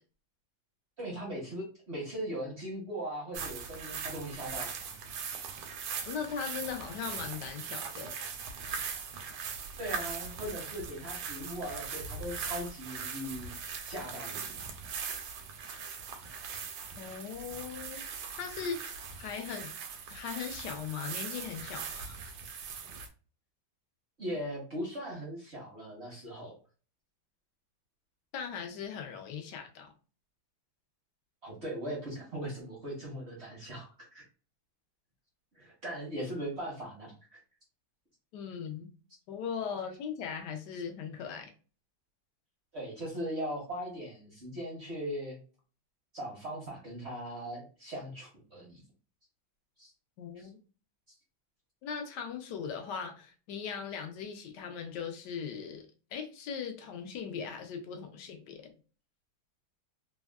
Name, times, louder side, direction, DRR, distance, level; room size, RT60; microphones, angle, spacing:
voice 1, 1.0-4.8 9.8-13.5 13.8-14.4 24.2-26.5 31.4-34.2 35.5-37.4 42.7-45.4 46.1-48.8 49.8-49.9 50.4-50.5, equal, 55° right, 0.7 m, -39 dB
sound 1, 3.3-23.1, right 6 dB, 85° right, 1.4 m, -40 dB
voice 2, 6.1-8.2 17.0-18.0 18.4-19.7 20.1-22.1 28.3-29.9 38.3-38.9 39.3-41.5 50.2-50.6 51.8-58.7, left 7 dB, 75° left, 1.0 m, -39 dB
3.4 x 2.2 x 2.3 m
omnidirectional pair, 2.3 m